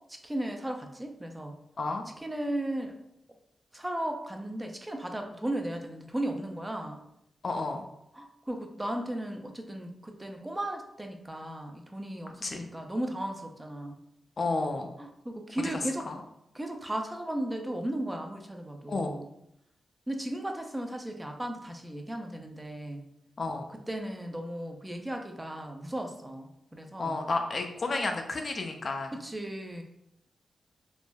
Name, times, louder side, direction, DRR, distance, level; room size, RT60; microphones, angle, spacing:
voice 1, 0.2-1.6 2.2-2.9 3.7-7.0 8.2-14.0 15.0-16.1 16.5-19.3 20.1-23.0 23.7-27.2 29.1-29.8, right 1 dB, 15° right, 3 dB, 0.4 m, -36 dB
voice 2, 7.4-7.8 12.4-12.7 14.4-14.9 16.1-16.2 18.9-19.1 23.4-23.6 27.0-29.1, left 3 dB, 50° left, 4 dB, 0.4 m, -31 dB
3.2 x 2.0 x 2.2 m, 0.80 s
cardioid pair, 60°, 0 cm